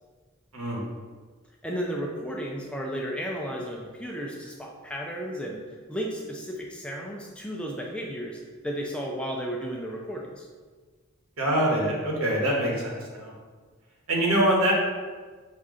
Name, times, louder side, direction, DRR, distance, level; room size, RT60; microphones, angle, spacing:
voice 1, 0.5-0.8 11.4-13.3 14.1-14.7, right 1 dB, 85° right, -2 dB, 1.1 m, -24 dB
voice 2, 1.6-10.5, equal, 5° left, -1 dB, 0.4 m, -34 dB
5.6 x 2.4 x 3.6 m, 1.4 s
head